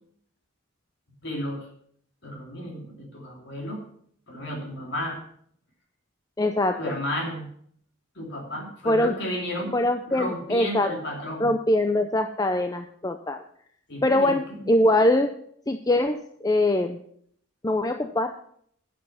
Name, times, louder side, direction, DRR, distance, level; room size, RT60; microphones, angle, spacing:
voice 1, 1.2-1.7 2.2-3.8 4.3-5.2 6.8-7.5 8.1-9.7 10.1-11.5 13.9-14.7, equal, 55° left, 0 dB, 2.9 m, -33 dB
voice 2, 6.4-6.8 8.9-9.1 9.7-10.9 11.4-13.4 14.0-15.3 15.7-17.0 17.6-18.3, left 1 dB, 15° left, 6 dB, 0.5 m, -23 dB
11.0 x 7.6 x 5.9 m, 0.64 s
head